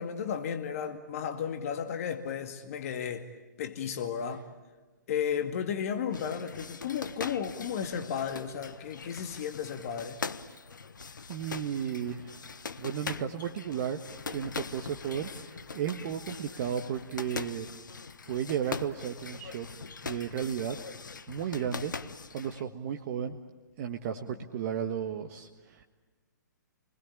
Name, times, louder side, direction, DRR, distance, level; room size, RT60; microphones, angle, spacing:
voice 1, 0.0-3.3 3.6-4.5 5.1-10.2 13.1-13.2, left 7 dB, 50° left, 2.1 m, -34 dB
sound 1, 6.1-22.6, left 5 dB, 75° left, 1.3 m, -42 dB
voice 2, 11.3-14.0 14.3-17.7 18.3-20.8 21.3-21.9 22.3-23.4 23.8-25.8, right 9 dB, 45° right, 1.5 m, -34 dB
29.5 x 21.0 x 8.5 m
figure-of-eight pair, 125°, 10 cm